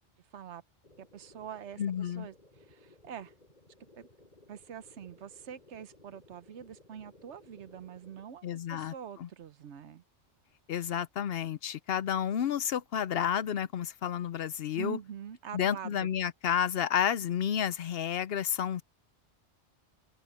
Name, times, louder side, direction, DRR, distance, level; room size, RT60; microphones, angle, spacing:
sound 1, 0.8-8.2, left 2 dB, 40° left, 5.6 m, -59 dB
voice 1, 1.0-3.3 4.0-4.1 4.5-10.0 14.7-16.1, right 8 dB, 75° right, 1.1 m, -45 dB
voice 2, 1.8-2.3 8.4-8.9 9.2-9.3 10.7-15.0 15.5-18.8, left 9 dB, 65° left, 0.8 m, -31 dB
open air
omnidirectional pair, 1.2 m